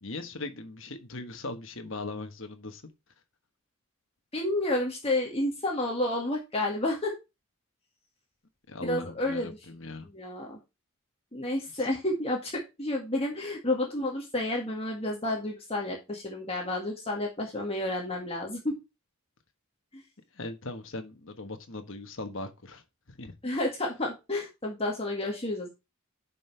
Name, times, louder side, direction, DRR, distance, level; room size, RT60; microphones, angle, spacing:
voice 1, 0.0-2.8 8.7-10.1 11.7-11.9 20.3-22.8 23.1-23.3, left 2 dB, 60° left, 1.3 m, -39 dB
voice 2, 4.3-7.1 8.8-9.6 10.1-10.6 11.3-18.7 19.9-20.0 23.4-25.7, left 1 dB, 25° left, 1.8 m, -30 dB
10.0 x 5.4 x 3.3 m
head